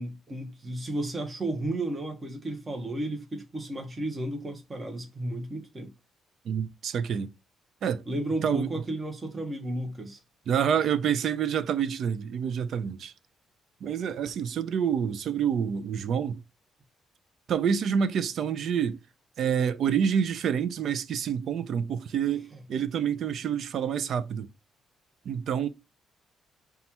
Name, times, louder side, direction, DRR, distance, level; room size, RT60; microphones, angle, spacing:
voice 1, 0.0-5.9 8.1-10.2 22.5-22.6, right 1 dB, 25° right, 0.9 m, -33 dB
voice 2, 6.4-7.3 7.8-8.0 8.4-8.7 10.5-13.1 13.8-16.4 17.5-19.0 19.4-24.5 25.3-25.7, right 8 dB, 65° right, 0.4 m, -27 dB
5.2 x 2.3 x 2.9 m
cardioid pair, 90°, 0 cm